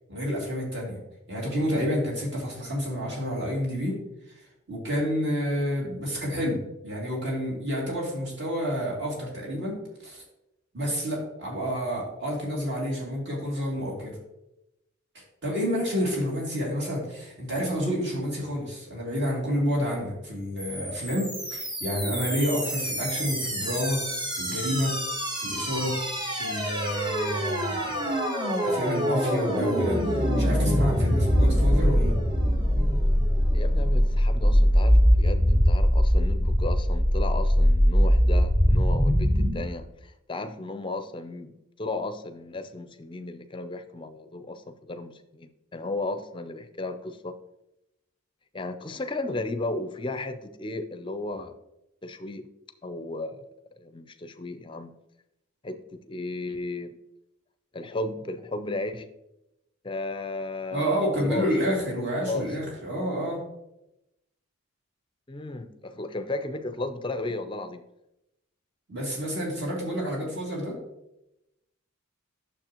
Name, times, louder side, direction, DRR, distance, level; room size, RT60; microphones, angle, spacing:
voice 1, 0.1-1.0 1.3-4.0 4.7-10.2 10.7-14.2 15.4-24.1 24.3-25.0 25.4-26.0 26.3-28.1 28.6-32.2 60.7-63.4 68.9-70.8, equal, 55° right, -3 dB, 2.6 m, -29 dB
sound 1, 20.6-39.6, equal, 20° right, 1.1 m, -23 dB
voice 2, 33.5-47.4 48.5-51.6 52.0-52.5 52.8-53.4 53.8-54.9 55.6-57.0 57.7-59.1 59.8-61.5 62.2-62.6 65.3-67.9, left 2 dB, 25° left, 9 dB, 0.5 m, -34 dB
9.3 x 6.8 x 2.9 m, 0.89 s
head